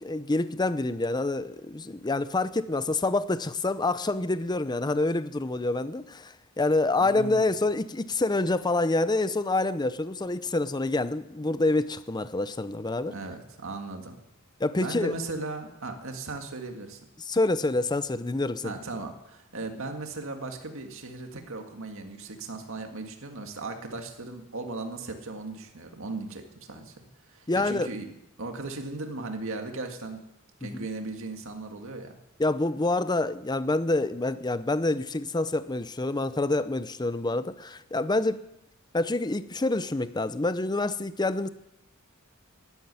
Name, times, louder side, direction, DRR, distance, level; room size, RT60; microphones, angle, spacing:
voice 1, 0.0-13.1 14.6-15.1 17.3-18.8 27.5-27.9 30.6-30.8 32.4-38.4 38.9-41.5, left 2 dB, 20° left, 0.6 m, -27 dB
voice 2, 7.0-7.4 13.1-14.2 14.8-17.0 18.6-26.9 27.3-28.1 28.4-30.2 30.6-32.2, right 3 dB, 60° right, 2.0 m, -37 dB
12.0 x 12.0 x 9.6 m
head